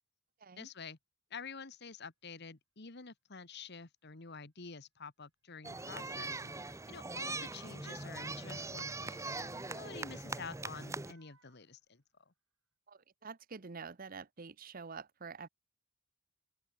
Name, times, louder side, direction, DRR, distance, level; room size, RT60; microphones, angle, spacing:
voice 1, 0.6-1.0 1.3-12.0, left 5 dB, 55° left, 1.5 m, -49 dB
Motor vehicle (road) / Siren, 3.5-3.6 4.7-12.3 12.7-12.8, right 5 dB, 75° right, 6.4 m, -74 dB
sound 1, 5.6-11.1, right 3 dB, 15° right, 1.0 m, -41 dB
voice 2, 12.9-15.5, right 5 dB, 45° right, 0.8 m, -47 dB
open air
head